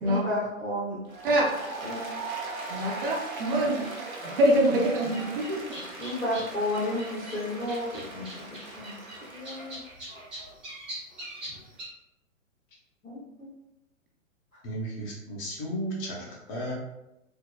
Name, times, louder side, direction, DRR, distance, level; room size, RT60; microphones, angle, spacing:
voice 1, 0.0-1.0 1.8-2.0 3.6-3.7 6.0-8.9 9.3-9.8 13.0-13.5, left 1 dB, 85° left, -10 dB, 1.2 m, -32 dB
Applause, 1.1-9.8, right 3 dB, 90° right, 0.7 m, -39 dB
voice 2, 2.7-3.8 4.2-5.6, right 1 dB, 40° right, -1 dB, 0.6 m, -24 dB
sound 1, 5.1-11.8, right 1 dB, 5° right, 0.4 m, -43 dB
voice 3, 14.6-16.7, right 1 dB, 25° left, -3 dB, 0.7 m, -34 dB
3.5 x 2.0 x 2.3 m, 0.89 s
figure-of-eight pair, 115°, 41 cm